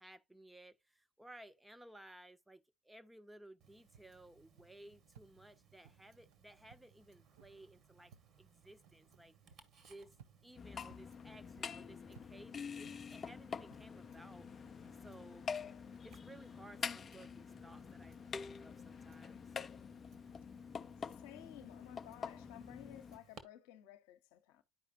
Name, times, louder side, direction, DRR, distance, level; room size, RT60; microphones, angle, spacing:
voice 1, 0.0-8.1 8.4-9.4 9.9-10.1 10.4-14.5 15.0-15.5 16.0-19.6, right 1 dB, 5° right, 0.7 m, -58 dB
Tick-tock, 3.6-23.4, right 6 dB, 45° right, 1.3 m, -66 dB
sound 1, 3.9-13.9, right 8 dB, 70° right, 0.6 m, -66 dB
sound 2, 10.6-23.2, left 6 dB, 30° left, 0.4 m, -46 dB
voice 2, 21.0-24.6, left 12 dB, 65° left, 0.8 m, -55 dB
11.5 x 4.9 x 2.5 m
hypercardioid pair, 75°, 0 cm